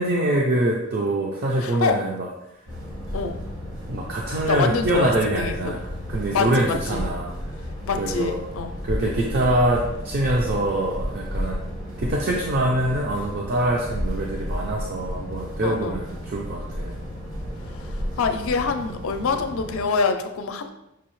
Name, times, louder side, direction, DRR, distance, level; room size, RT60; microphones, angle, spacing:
voice 1, 0.0-2.3 3.9-5.8 6.1-7.3 8.0-8.4 8.8-11.6 12.0-17.0, right 1 dB, 50° right, -1 dB, 0.5 m, -24 dB
voice 2, 1.6-1.9 3.1-3.4 4.4-5.8 6.3-7.0 7.8-8.7 15.6-16.0 17.7-20.7, left 5 dB, 80° left, 7 dB, 0.4 m, -26 dB
sound 1, 2.7-19.8, equal, 65° right, 1.2 m, -33 dB
5.9 x 2.7 x 3.0 m, 0.89 s
head